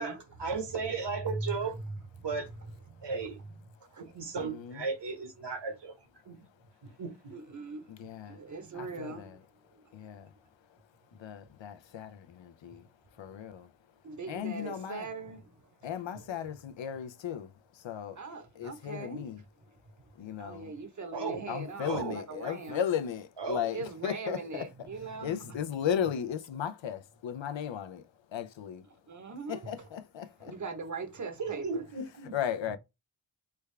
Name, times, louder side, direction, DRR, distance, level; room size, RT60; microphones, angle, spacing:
voice 1, 0.0-1.8 2.2-2.5 3.0-3.4 4.0-5.9 6.3-6.4 7.0-7.3 21.1-21.4 21.8-22.2 23.4-23.6 31.4-32.3, right 4 dB, 60° right, 1.0 m, -35 dB
voice 2, 0.9-1.8 2.6-3.1 3.8-4.1 7.3-9.4 9.7-9.9 13.3-13.4 14.0-15.7 16.1-16.4 18.2-19.3 20.4-22.8 23.7-25.6 29.1-29.7 30.4-31.9, right 3 dB, 40° right, 0.8 m, -41 dB
voice 3, 4.4-4.8 7.9-8.4 8.7-9.4 9.9-10.3 10.7-10.8 11.1-13.7 14.3-15.1 15.8-18.2 18.6-19.4 20.2-20.7 21.5-24.9 25.2-28.9 29.5-30.5 32.3-32.8, left 9 dB, 70° left, 0.6 m, -36 dB
3.4 x 2.3 x 3.2 m
wide cardioid pair, 95°, 47 cm